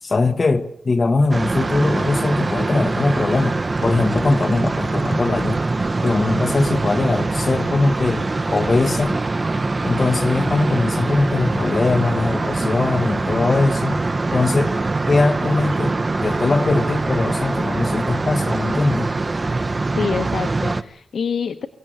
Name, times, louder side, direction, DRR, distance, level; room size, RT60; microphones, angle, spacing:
voice 1, 0.0-3.5 3.8-5.6 6.0-9.2 9.8-14.0 14.3-14.7 15.1-15.9 16.2-19.1, left 3 dB, 40° left, 1.2 m, -21 dB
sound 1, 1.3-20.8, right 3 dB, 30° right, 0.9 m, -23 dB
voice 2, 19.8-21.7, left 6 dB, 90° left, 1.0 m, -26 dB
24.0 x 17.0 x 8.8 m
wide cardioid pair, 120°, 0 cm